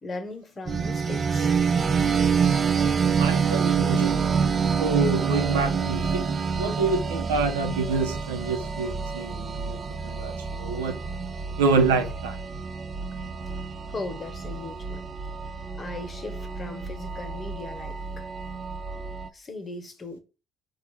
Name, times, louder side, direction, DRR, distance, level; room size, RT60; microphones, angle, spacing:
voice 1, 0.0-1.6 13.9-15.0 15.8-18.2 19.3-20.2, left 3 dB, 35° left, 1.0 m, -38 dB
sound 1, 0.7-19.3, right 6 dB, 40° right, 0.4 m, -27 dB
voice 2, 3.2-4.2 4.8-6.2 6.6-11.0 11.6-12.4, right 4 dB, 90° right, 0.9 m, -27 dB
4.1 x 2.4 x 4.7 m
hypercardioid pair, 55°, 0 cm